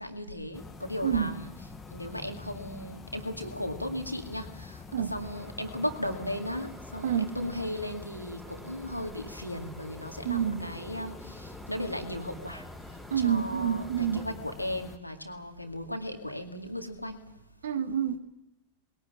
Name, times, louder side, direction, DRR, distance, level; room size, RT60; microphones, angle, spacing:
voice 1, 0.0-1.5 1.9-4.8 5.1-12.6 13.2-17.2, left 1 dB, 90° left, 2.2 m, -36 dB
sound 1, 0.5-15.0, left 4 dB, 15° left, 1.3 m, -46 dB
voice 2, 1.0-1.4 4.9-5.1 7.0-7.3 10.2-10.7 13.1-14.3 17.6-18.2, right 8 dB, 60° right, 1.7 m, -28 dB
sound 2, 5.2-14.3, right 2 dB, 15° right, 4.6 m, -50 dB
21.0 x 18.5 x 8.8 m
figure-of-eight pair, 90°, 0 cm